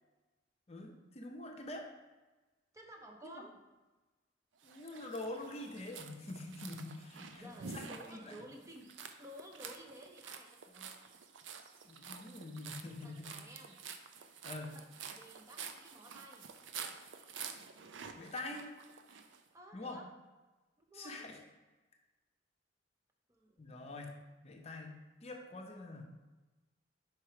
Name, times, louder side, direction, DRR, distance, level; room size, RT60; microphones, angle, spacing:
voice 1, 0.7-1.9 4.6-7.4 7.7-8.3 11.8-13.3 14.4-14.7 18.1-18.6 19.7-20.0 20.9-21.4 23.6-24.1 24.4-26.1, left 2 dB, 35° left, 2 dB, 0.6 m, -45 dB
voice 2, 2.7-3.6 7.2-8.9 9.2-11.0 13.0-13.8 14.7-14.8 15.1-16.5 19.5-20.1 20.8-21.3 23.3-23.9, equal, 15° right, 2 dB, 0.5 m, -54 dB
sound 1, 4.6-19.4, right 6 dB, 75° right, 0.5 m, -49 dB
4.8 x 4.5 x 4.8 m, 1.2 s
head